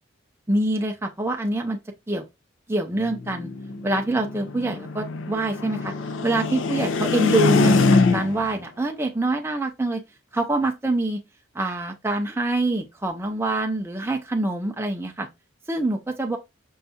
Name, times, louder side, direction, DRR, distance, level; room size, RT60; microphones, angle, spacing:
voice 1, 0.5-1.8 2.1-2.3 2.7-3.5 3.8-5.9 6.2-10.0 10.3-11.2 11.5-15.3 15.7-16.4, right 2 dB, 10° right, 0.5 m, -25 dB
sound 1, 3.0-8.5, left 3 dB, 65° left, 0.4 m, -23 dB
5.3 x 2.3 x 2.7 m
head